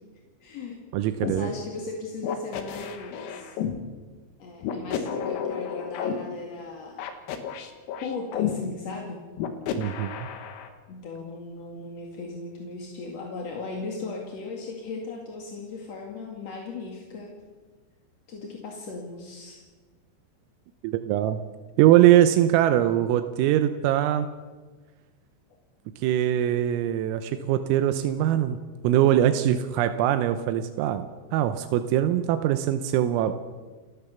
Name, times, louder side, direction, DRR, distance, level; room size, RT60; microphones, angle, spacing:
voice 1, 0.4-0.8 1.3-3.5 4.4-7.1 8.0-9.2 10.9-17.4 18.3-19.6, left 3 dB, 50° left, 0 dB, 2.2 m, -37 dB
voice 2, 0.9-1.5 9.7-10.3 20.8-21.4 21.8-24.3 26.0-28.6 28.8-33.3, right 12 dB, 90° right, 9 dB, 3.5 m, -22 dB
sound 1, 1.2-1.4 2.2-3.8 4.6-6.1 7.0-8.5 9.4-10.7, left 8 dB, 80° left, 4.3 m, -31 dB
29.0 x 14.0 x 7.1 m, 1.4 s
omnidirectional pair, 6.0 m